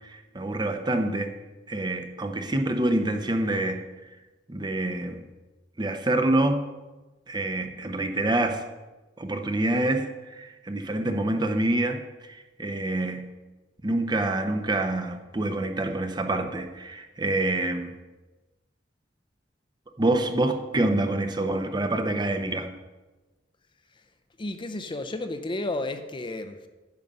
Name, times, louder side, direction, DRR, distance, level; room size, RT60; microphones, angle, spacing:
voice 1, 0.0-1.3 1.7-3.8 4.5-5.2 5.8-6.6 7.3-8.6 9.2-12.0 12.3-13.3 13.8-17.9 20.0-22.7, right 2 dB, 25° right, 6 dB, 0.8 m, -26 dB
voice 2, 24.4-26.7, left 2 dB, 25° left, 8 dB, 0.6 m, -32 dB
10.5 x 7.2 x 5.4 m, 1.2 s
head